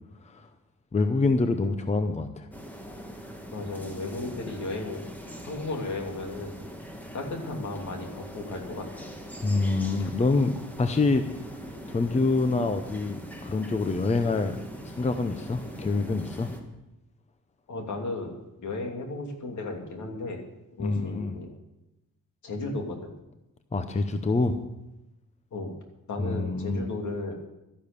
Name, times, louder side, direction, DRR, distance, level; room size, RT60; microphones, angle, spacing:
voice 1, 0.9-2.5 9.4-11.3 11.9-14.6 14.8-16.5 20.8-21.4 23.7-24.6 26.2-26.8, left 3 dB, 20° left, 8 dB, 0.7 m, -26 dB
sound 1, 2.5-16.6, equal, 5° left, 1.6 m, -41 dB
voice 2, 3.5-5.0 5.4-6.5 7.1-9.1 17.7-20.4 20.7-21.5 22.4-23.1 25.5-25.7 26.1-27.3, left 2 dB, 65° left, 2 dB, 2.9 m, -34 dB
12.5 x 10.5 x 6.8 m, 0.93 s
wide cardioid pair, 155°, 31 cm